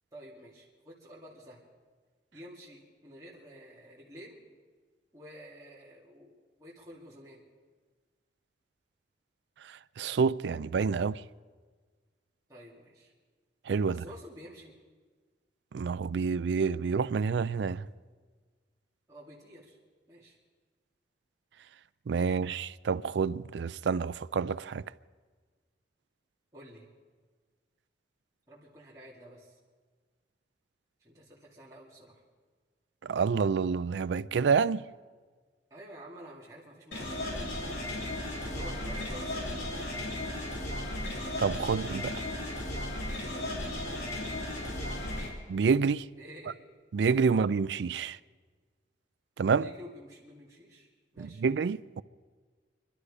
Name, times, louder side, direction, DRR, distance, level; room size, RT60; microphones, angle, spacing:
voice 1, 0.1-1.6 2.3-4.5 5.1-6.3 6.6-7.4 12.5-13.1 13.8-14.7 19.1-19.8 20.1-20.4 22.2-22.5 26.5-26.9 28.5-29.6 31.0-32.2 35.7-37.6 38.4-40.0 43.3-43.5 46.2-46.6 47.3-47.5 49.6-50.9 51.1-51.4, equal, 20° right, 2.5 m, -50 dB
voice 2, 10.0-11.2 13.7-14.0 15.7-17.8 22.1-24.8 33.0-34.8 41.4-42.2 45.5-46.1 46.9-48.2 49.4-49.7 51.2-52.0, right 5 dB, 75° right, 0.4 m, -28 dB
sound 1, 36.9-45.3, left 1 dB, 80° left, 3.6 m, -35 dB
24.5 x 12.0 x 5.0 m
head